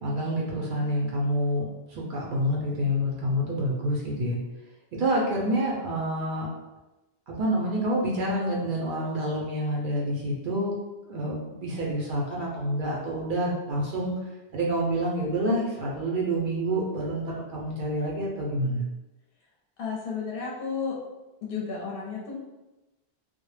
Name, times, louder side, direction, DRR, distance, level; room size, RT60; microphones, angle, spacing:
voice 1, 0.0-4.4 4.9-6.5 7.3-10.8 11.1-14.1 14.5-18.8, equal, 60° right, -3 dB, 0.6 m, -28 dB
voice 2, 19.8-20.9 21.4-22.4, left 5 dB, 65° left, -4 dB, 0.7 m, -32 dB
2.1 x 2.0 x 3.1 m, 1.0 s
omnidirectional pair, 1.1 m